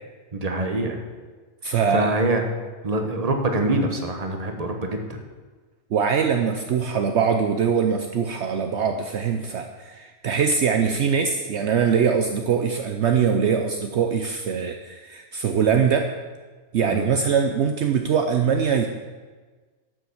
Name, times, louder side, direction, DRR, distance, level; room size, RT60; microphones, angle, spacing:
voice 1, 0.3-1.0 1.9-2.4 2.8-5.2 16.8-17.1, right 2 dB, 30° right, 4 dB, 1.3 m, -24 dB
voice 2, 1.6-2.1 5.9-16.1 16.7-18.9, right 6 dB, 65° right, 5 dB, 1.0 m, -22 dB
12.0 x 6.7 x 7.1 m, 1.4 s
omnidirectional pair, 1.3 m